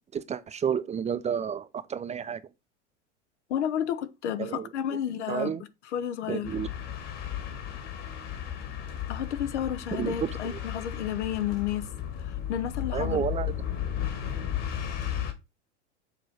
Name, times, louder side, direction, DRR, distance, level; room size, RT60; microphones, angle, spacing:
voice 1, 0.1-2.4 4.4-4.7 5.3-5.6 6.3-6.7 9.9-10.6 12.9-13.5, right 8 dB, 20° right, 0.6 m, -31 dB
voice 2, 3.5-5.5 5.9-6.5 9.1-11.9 12.5-13.2, left 10 dB, 75° left, 1.1 m, -31 dB
sound 1, 6.4-15.3, left 10 dB, 45° left, 2.4 m, -34 dB
7.1 x 3.8 x 6.2 m
hypercardioid pair, 100°, 36 cm